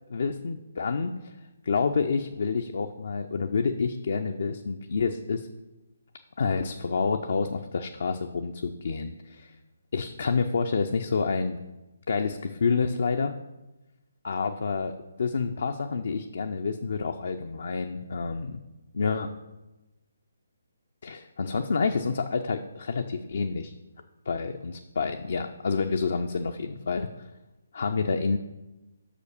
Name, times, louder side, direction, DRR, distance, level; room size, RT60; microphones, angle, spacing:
voice 1, 0.1-1.1 1.6-5.5 6.4-9.5 9.9-11.6 12.1-13.3 14.2-18.6 18.9-19.3 21.0-23.7 24.3-27.1 27.7-28.4, left 4 dB, 50° left, 6 dB, 0.4 m, -28 dB
6.3 x 5.0 x 6.6 m, 1.1 s
figure-of-eight pair, 140°, 0 cm